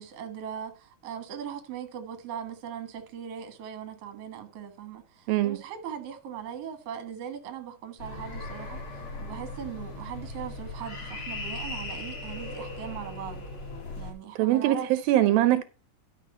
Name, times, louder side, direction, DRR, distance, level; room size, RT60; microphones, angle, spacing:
voice 1, 0.0-13.4 14.0-15.1, right 9 dB, 50° right, 2.2 m, -39 dB
sound 1, 8.0-14.1, left 2 dB, 40° left, 2.7 m, -38 dB
voice 2, 14.4-15.6, right 14 dB, 80° right, 2.5 m, -22 dB
12.0 x 6.0 x 4.5 m
omnidirectional pair, 4.2 m